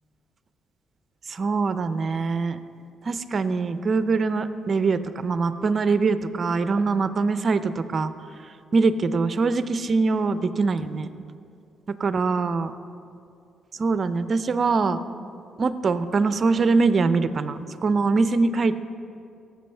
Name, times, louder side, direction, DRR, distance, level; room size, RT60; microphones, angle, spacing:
voice 1, 1.3-2.6 3.0-8.1 8.7-11.1 12.0-12.7 13.8-15.0 15.6-18.7, right 4 dB, 45° right, 12 dB, 0.5 m, -23 dB
16.0 x 7.6 x 3.4 m, 2.5 s
cardioid pair, 90°, 0 cm